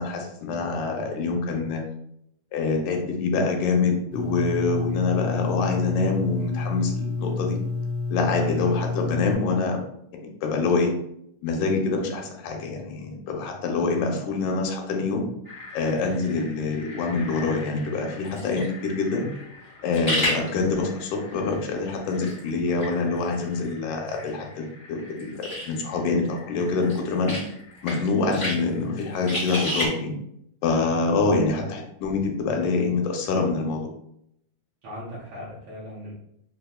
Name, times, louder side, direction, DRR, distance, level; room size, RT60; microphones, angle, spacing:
voice 1, 0.0-1.8 2.5-7.6 8.1-9.8 10.4-10.9 11.4-15.2 15.7-19.3 19.8-24.6 24.9-27.4 27.8-30.1 30.6-33.9, left 4 dB, 80° left, 2 dB, 2.1 m, -25 dB
sound 1, 4.1-9.4, left 3 dB, 85° right, 2.6 m, -29 dB
voice 2, 8.4-8.8 34.8-36.1, equal, 70° right, -6 dB, 1.6 m, -38 dB
sound 2, 15.4-29.9, left 1 dB, 65° left, 0.6 m, -35 dB
5.4 x 2.3 x 2.2 m, 0.75 s
omnidirectional pair, 3.6 m